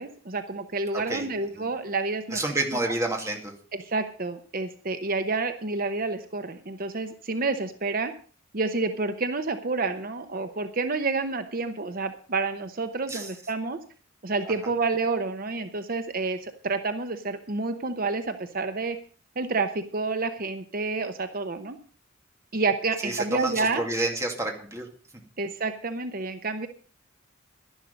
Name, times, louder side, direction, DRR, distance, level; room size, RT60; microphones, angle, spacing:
voice 1, 0.0-2.4 3.7-8.1 8.5-13.8 14.2-19.0 19.4-21.8 22.5-23.8 25.4-26.7, right 3 dB, 45° right, 8 dB, 0.9 m, -29 dB
voice 2, 0.9-1.3 1.6-1.7 2.3-3.5 13.1-13.3 14.4-14.5 23.0-24.9, right 2 dB, 15° right, 2 dB, 2.4 m, -29 dB
11.5 x 11.0 x 5.3 m, 0.41 s
head